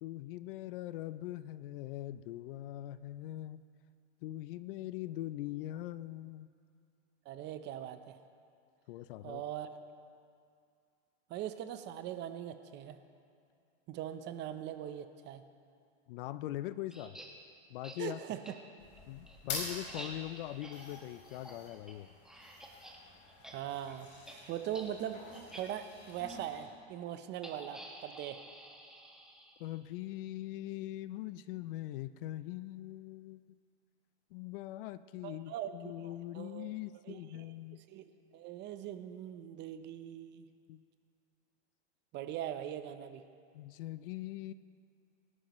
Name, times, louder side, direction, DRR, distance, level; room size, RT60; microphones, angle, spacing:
voice 1, 0.0-3.6 4.2-6.5 8.9-9.4 16.1-17.2 17.7-18.2 19.1-22.1 29.6-33.4 34.3-37.8 40.7-40.8 43.5-44.5, left 14 dB, 50° left, 15 dB, 0.5 m, -42 dB
voice 2, 7.3-8.2 9.2-9.7 11.3-13.0 13.9-15.4 18.0-18.5 23.5-28.4 35.2-36.8 37.0-40.5 42.1-43.2, right 10 dB, 30° right, 10 dB, 0.7 m, -41 dB
sound 1, 16.9-17.3 17.8-18.0 18.4-18.5 19.0-23.0 23.3-23.5 23.8-24.0 24.3-24.4 24.7-24.9 25.3-25.6 26.3-26.4 27.4-29.8, right 1 dB, ahead, 1.5 m, -50 dB
sound 2, 18.8-26.7, left 3 dB, 30° left, 4.4 m, -47 dB
25.5 x 12.0 x 3.1 m, 2.3 s
hypercardioid pair, 135°, 35 cm